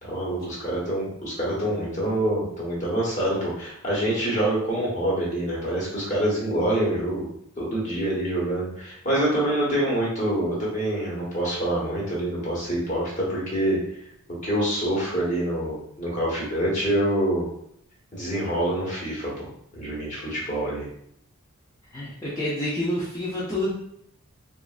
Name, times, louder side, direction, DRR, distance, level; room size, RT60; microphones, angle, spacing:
voice 1, 0.0-7.3 7.6-14.0 14.4-17.5 18.1-19.5 19.7-20.8, right 1 dB, 35° left, -6 dB, 1.1 m, -26 dB
voice 2, 21.9-23.7, left 1 dB, 15° left, -8 dB, 0.5 m, -28 dB
3.1 x 2.4 x 2.4 m, 0.72 s
head